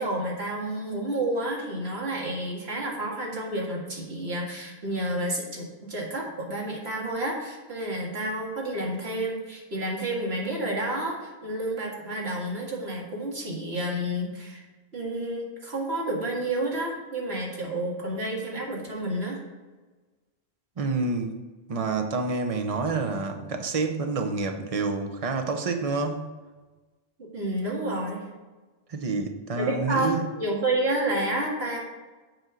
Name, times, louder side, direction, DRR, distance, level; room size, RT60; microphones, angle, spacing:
voice 1, 0.0-14.6 14.9-19.4 27.2-28.2 29.6-31.8, right 1 dB, 75° right, -3 dB, 2.2 m, -30 dB
voice 2, 20.8-21.4 21.7-26.2 28.9-30.3, right 4 dB, 35° right, 5 dB, 0.8 m, -28 dB
7.8 x 4.5 x 6.2 m, 1.2 s
omnidirectional pair, 1.1 m